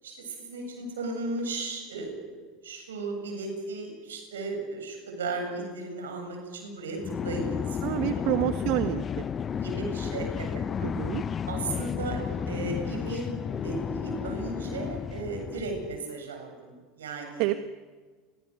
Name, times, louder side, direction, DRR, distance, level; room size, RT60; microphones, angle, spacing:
voice 1, 0.0-7.0 7.2-8.0 9.6-10.6 11.5-13.3 13.6-17.4, right 3 dB, 80° right, 3 dB, 7.9 m, -35 dB
sound 1, 7.0-16.0, left 7 dB, 35° left, 0.7 m, -32 dB
voice 2, 7.8-9.3 10.8-11.2 17.4-17.6, right 14 dB, 60° right, 10 dB, 1.2 m, -28 dB
29.5 x 23.5 x 6.5 m, 1.4 s
hypercardioid pair, 80°, 0 cm